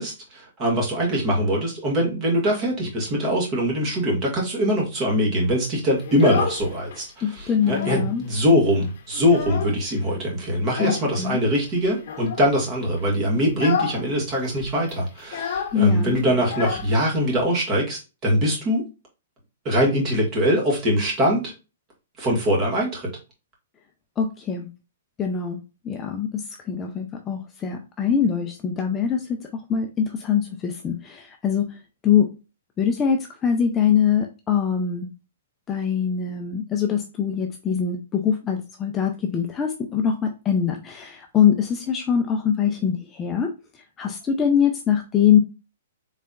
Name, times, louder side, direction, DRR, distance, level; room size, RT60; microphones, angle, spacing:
voice 1, 0.0-18.9 19.7-21.5 22.2-23.1, equal, 25° right, -1 dB, 1.8 m, -22 dB
Child speech kid speaking, 6.0-7.0 7.4-8.1 8.4-8.5 8.9-10.0 10.6-11.1 12.0-12.5 12.9-13.1 13.5-14.0 14.3-14.4 14.6-17.4, left 7 dB, 55° left, 0.8 m, -30 dB
voice 2, 7.2-8.2 10.8-11.4 15.7-16.2 24.2-24.7 25.2-25.6 25.8-32.3 32.8-35.1 35.7-43.5 44.0-45.4, left 8 dB, 15° left, 3 dB, 0.5 m, -23 dB
4.1 x 3.3 x 2.3 m, 0.30 s
hypercardioid pair, 150°, 0 cm